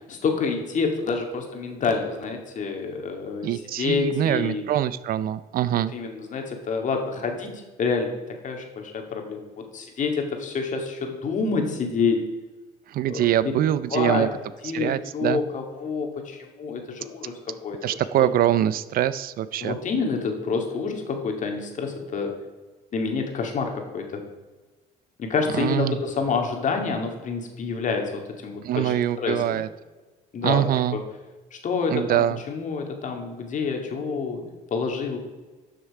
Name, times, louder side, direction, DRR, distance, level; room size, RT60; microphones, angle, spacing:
voice 1, 0.1-4.6 5.9-12.3 13.1-13.3 13.9-14.3 14.6-17.8 18.2-18.3 19.6-22.3 22.9-24.1 25.2-28.1 28.4-29.6 30.3-30.6 30.9-31.0 31.5-34.4 34.7-35.2, left 5 dB, 50° left, 3 dB, 2.2 m, -28 dB
voice 2, 3.4-5.9 12.9-14.3 14.7-15.4 17.8-19.8 25.5-26.0 28.6-29.7 30.4-31.0 31.9-32.4, right 11 dB, 60° right, 16 dB, 0.5 m, -24 dB
12.5 x 6.5 x 4.8 m, 1.2 s
cardioid pair, 110°, 17 cm